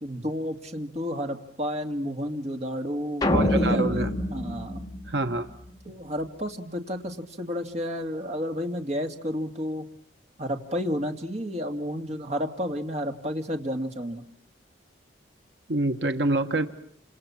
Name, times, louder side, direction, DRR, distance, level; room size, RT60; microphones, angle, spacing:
voice 1, 0.0-4.8 5.9-9.9 10.4-14.2, equal, 35° right, 4 dB, 2.5 m, -31 dB
sound 1, 3.2-5.7, left 1 dB, 20° left, 2.6 m, -26 dB
voice 2, 3.3-4.1 5.1-5.5 15.7-16.7, right 2 dB, 70° right, 7 dB, 1.4 m, -26 dB
29.0 x 27.0 x 7.3 m, 0.64 s
head